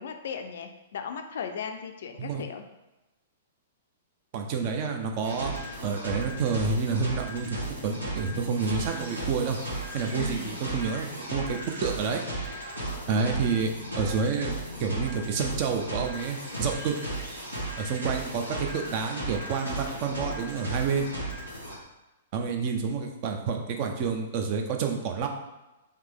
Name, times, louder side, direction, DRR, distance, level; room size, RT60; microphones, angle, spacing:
voice 1, 0.0-2.6 10.1-10.7, left 7 dB, 55° left, 6 dB, 0.4 m, -37 dB
voice 2, 4.3-5.5 5.8-9.6 9.9-12.2 13.1-13.7 14.0-17.0 17.8-21.1 22.3-25.3, right 5 dB, 40° right, 4 dB, 0.5 m, -29 dB
sound 1, 5.2-21.8, right 1 dB, 85° right, 1.2 m, -35 dB
3.3 x 2.8 x 3.5 m, 1.0 s
figure-of-eight pair, 110°, 0 cm